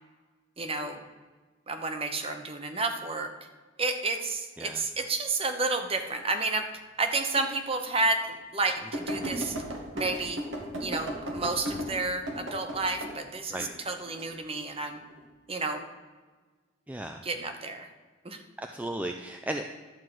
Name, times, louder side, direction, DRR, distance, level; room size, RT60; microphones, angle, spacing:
voice 1, 0.6-1.0 1.7-3.3 3.8-6.7 7.0-9.6 9.9-10.4 10.8-15.0 15.5-15.8 17.2-17.9 18.2-18.4, right 3 dB, 30° right, 6 dB, 0.9 m, -31 dB
sound 1, 7.4-7.5 8.0-8.1 8.9-13.1 13.6-14.2 14.9-15.2, equal, 85° right, 1.8 m, -35 dB
voice 2, 16.9-17.2 18.6-19.6, right 1 dB, 10° right, 5 dB, 0.4 m, -35 dB
11.5 x 4.6 x 7.7 m, 1.4 s
head